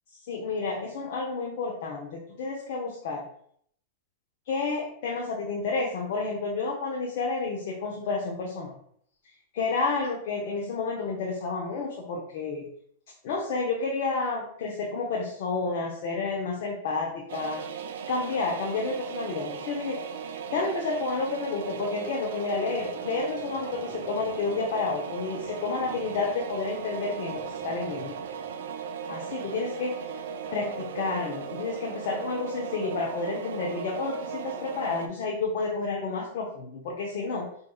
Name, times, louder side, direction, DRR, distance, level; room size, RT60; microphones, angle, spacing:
voice 1, 0.3-3.2 4.5-8.7 9.5-12.7 13.2-17.6 18.1-20.0 20.5-28.2 29.1-29.9 30.5-37.5, left 4 dB, 60° left, -1 dB, 0.6 m, -30 dB
sound 1, 17.3-35.1, right 6 dB, 70° right, 0.3 m, -37 dB
sound 2, 22.7-29.1, left 1 dB, 40° left, 1.2 m, -51 dB
4.6 x 2.7 x 2.3 m, 0.65 s
hypercardioid pair, 105°, 0 cm